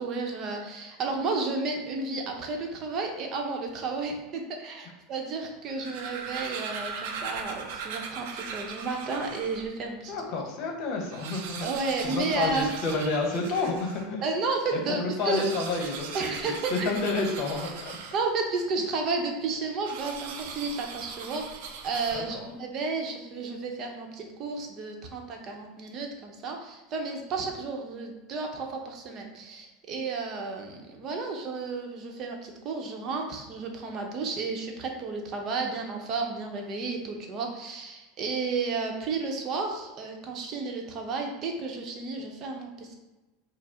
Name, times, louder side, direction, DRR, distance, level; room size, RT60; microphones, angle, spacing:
voice 1, 0.0-10.2 11.6-12.7 14.2-15.4 16.1-16.9 18.1-42.9, right 3 dB, 45° right, 2 dB, 0.8 m, -32 dB
sound 1, 5.6-9.7 10.3-10.4 10.6-10.7 11.0-14.1 15.1-18.5 19.8-22.5, right 5 dB, 70° right, 0.5 m, -39 dB
voice 2, 10.1-11.7 12.0-14.2 14.9-18.0 22.1-22.4, left 3 dB, 55° left, 2 dB, 0.9 m, -30 dB
4.7 x 2.0 x 3.6 m, 1.1 s
supercardioid pair, 110°, 0 cm